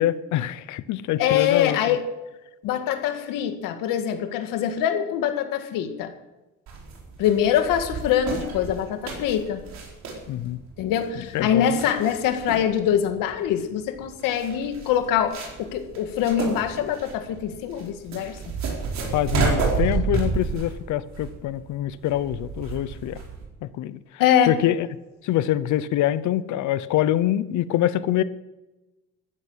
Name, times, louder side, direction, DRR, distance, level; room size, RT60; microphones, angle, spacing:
voice 1, 0.0-2.0 10.3-10.6 11.2-11.7 19.1-23.2 23.6-24.0 24.5-24.9 25.2-28.2, left 13 dB, 65° left, 16 dB, 0.9 m, -25 dB
voice 2, 1.2-2.0 2.6-6.1 7.2-9.6 10.8-18.4 24.2-24.6, left 9 dB, 90° left, 7 dB, 2.0 m, -24 dB
sound 1, 6.7-23.4, right 5 dB, 55° right, 4.5 m, -31 dB
14.0 x 10.5 x 6.4 m, 1.0 s
cardioid pair, 155°, 32 cm